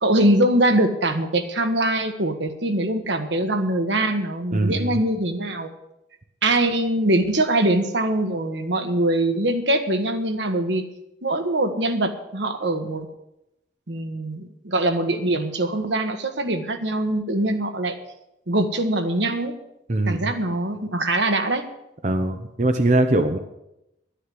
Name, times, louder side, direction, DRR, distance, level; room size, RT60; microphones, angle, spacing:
voice 1, 0.0-5.7 6.4-10.8 11.2-13.1 13.9-18.0 18.5-19.5 20.1-21.6, right 1 dB, 80° right, 7 dB, 1.4 m, -23 dB
voice 2, 4.5-4.9 19.9-20.3 22.0-23.4, right 2 dB, 40° right, 7 dB, 0.7 m, -21 dB
11.0 x 9.9 x 7.7 m, 0.87 s
head